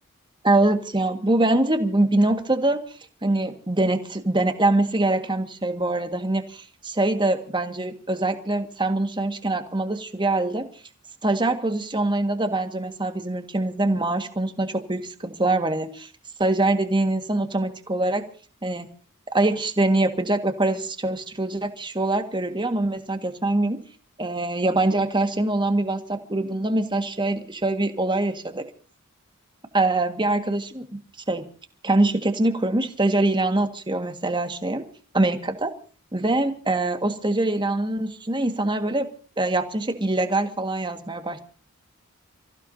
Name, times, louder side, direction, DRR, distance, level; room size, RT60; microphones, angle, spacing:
voice 1, 0.4-2.8 3.2-10.7 11.2-16.1 16.4-18.3 18.6-18.9 19.3-23.8 24.2-28.6 29.7-31.0 31.3-31.4 31.8-34.9 35.1-35.7 36.1-39.1 39.4-41.4, right 2 dB, 20° right, 7 dB, 1.8 m, -24 dB
30.0 x 15.5 x 2.8 m, 0.41 s
head